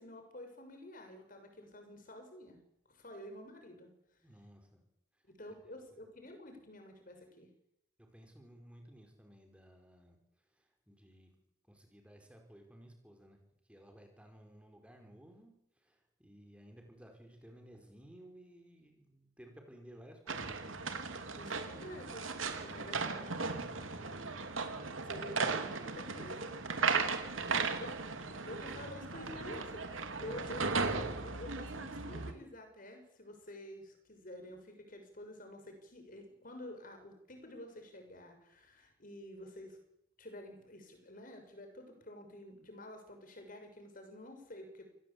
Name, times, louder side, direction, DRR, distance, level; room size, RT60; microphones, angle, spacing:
voice 1, 0.0-2.6 2.9-3.9 5.3-7.5 21.3-22.3 22.6-23.0 25.0-26.6 27.8-28.0 28.5-39.8 40.2-44.9, left 1 dB, 45° left, 6 dB, 6.4 m, -49 dB
voice 2, 4.2-4.8 5.6-5.8 8.0-10.2 10.5-11.3 11.7-13.4 13.7-20.8 22.5-24.2 27.3-27.8, equal, 5° right, 4 dB, 5.0 m, -57 dB
sound 1, 20.3-32.3, right 4 dB, 85° right, 3.1 m, -36 dB
28.5 x 18.0 x 8.6 m, 0.78 s
head